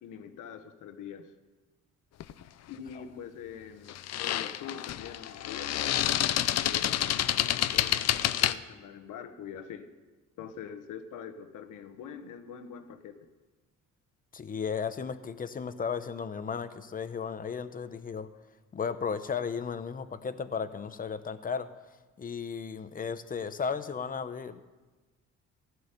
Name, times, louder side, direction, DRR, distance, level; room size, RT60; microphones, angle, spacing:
voice 1, 0.0-1.3 2.7-6.1 6.5-9.9 10.4-13.3, left 8 dB, 85° left, 8 dB, 1.3 m, -44 dB
sound 1, 2.2-2.4 3.9-8.5, left 11 dB, 55° left, 0.6 m, -28 dB
voice 2, 14.3-18.3 18.7-21.7 22.2-24.6, left 6 dB, 25° left, 11 dB, 0.8 m, -35 dB
15.5 x 6.3 x 9.9 m, 1.2 s
cardioid pair, 125°, 31 cm